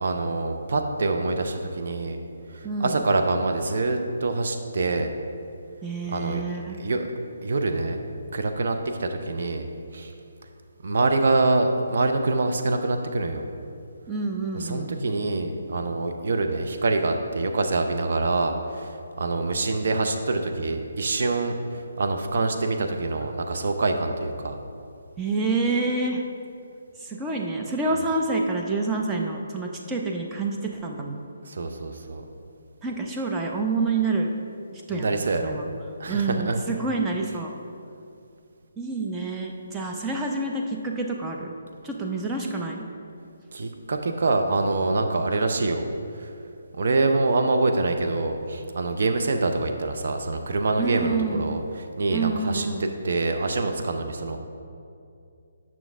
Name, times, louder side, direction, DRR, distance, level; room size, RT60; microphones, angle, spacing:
voice 1, 0.0-2.2 2.5-5.1 6.1-6.4 6.7-7.1 7.4-8.0 8.3-9.6 9.9-10.1 10.8-13.4 14.5-24.6 31.5-32.2 34.9-35.6 36.0-36.6 43.5-45.9 46.2-46.3 46.7-52.7 53.0-54.4, right 3 dB, 55° right, 5 dB, 0.7 m, -25 dB
voice 2, 2.6-3.0 5.8-6.8 14.1-15.0 25.2-26.2 27.0-31.2 32.8-34.3 34.7-35.2 35.4-35.7 36.1-37.5 38.8-41.5 41.8-42.9 50.8-51.5 52.1-52.8, right 3 dB, 10° right, 0 dB, 0.7 m, -28 dB
9.0 x 6.0 x 3.6 m, 2.5 s
figure-of-eight pair, 140°, 0 cm